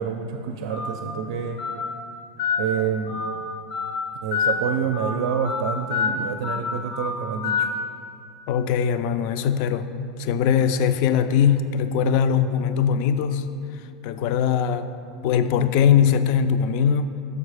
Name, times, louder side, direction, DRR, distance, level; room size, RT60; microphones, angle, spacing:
voice 1, 0.0-1.6 2.6-3.2 4.2-7.7, right 7 dB, 75° right, 4 dB, 0.4 m, -27 dB
Telephone, 0.7-0.9 1.6-1.8 2.4-2.6 3.1-3.3 3.7-3.9 4.3-4.5 4.9-5.1 5.4-5.6 5.9-6.1 6.4-6.6 6.9-7.1 7.4-7.6, left 7 dB, 90° left, 1.0 m, -25 dB
voice 2, 8.5-9.9 10.2-13.5 14.0-14.9 15.2-17.1, left 8 dB, 55° left, 11 dB, 0.3 m, -21 dB
6.7 x 4.7 x 4.9 m, 2.6 s
supercardioid pair, 140°, 3 cm